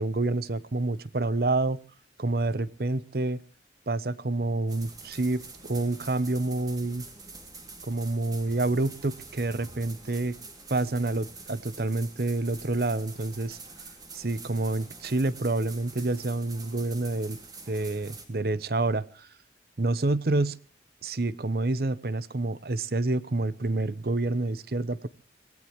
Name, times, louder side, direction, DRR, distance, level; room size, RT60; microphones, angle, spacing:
voice 1, 0.0-1.8 2.2-3.4 3.9-7.1 7.8-10.4 10.7-13.6 14.1-17.4 17.7-19.3 19.8-20.6 21.0-25.1, right 2 dB, 55° right, 18 dB, 0.8 m, -28 dB
sound 1, 4.7-18.3, right 3 dB, 20° right, 2.4 m, -46 dB
25.0 x 18.0 x 3.0 m, 0.36 s
head